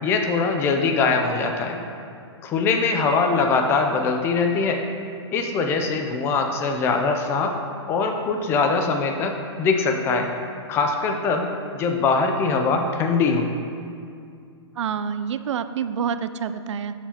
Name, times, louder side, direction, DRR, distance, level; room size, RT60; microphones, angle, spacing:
voice 1, 0.0-1.8 2.4-4.8 5.3-7.5 7.9-10.3 10.7-11.5 11.7-13.5, left 4 dB, 15° left, 4 dB, 0.4 m, -22 dB
voice 2, 14.8-16.9, right 7 dB, 85° right, 12 dB, 0.4 m, -27 dB
7.5 x 7.0 x 2.8 m, 2.4 s
hypercardioid pair, 150°, 15 cm